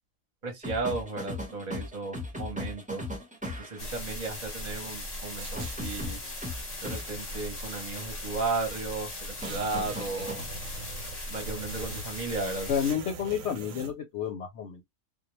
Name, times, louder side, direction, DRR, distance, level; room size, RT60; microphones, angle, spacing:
voice 1, 0.4-3.1 3.6-6.2 6.8-10.4 11.3-12.7, right 3 dB, 40° right, 0.7 m, -34 dB
sound 1, 0.6-3.9 5.6-7.0 9.4-10.4 12.4-12.6, left 1 dB, 10° right, 0.4 m, -37 dB
sound 2, 3.8-12.9, left 1 dB, 35° left, 0.7 m, -38 dB
sound 3, 5.4-6.1 6.7-7.5 8.4-8.5 8.8-8.9 9.1-12.3 12.7-14.0, right 3 dB, 85° right, 1.0 m, -43 dB
voice 2, 12.7-14.8, left 8 dB, 65° left, 0.8 m, -30 dB
2.2 x 2.0 x 2.9 m
omnidirectional pair, 1.4 m